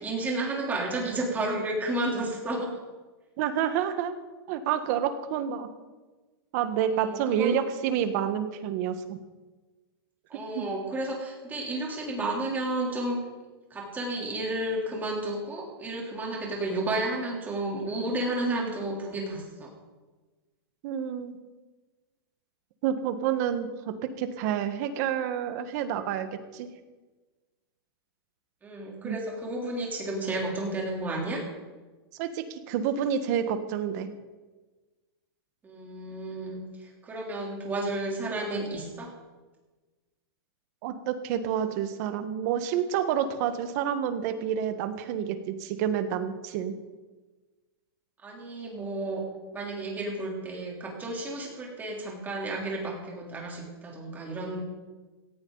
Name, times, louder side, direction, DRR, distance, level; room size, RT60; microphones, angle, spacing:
voice 1, 0.0-2.7 6.9-7.6 10.3-13.3 13.7-19.8 28.6-31.4 35.6-39.1 48.2-49.2 49.5-54.6, right 2 dB, 15° right, -1 dB, 3.4 m, -32 dB
voice 2, 3.4-4.1 4.5-5.7 6.5-9.2 10.5-10.6 20.8-21.3 22.8-26.7 29.0-29.2 32.2-34.1 40.8-46.7, right 9 dB, 40° right, 9 dB, 1.4 m, -29 dB
17.5 x 14.5 x 4.0 m, 1.3 s
supercardioid pair, 160°, 13 cm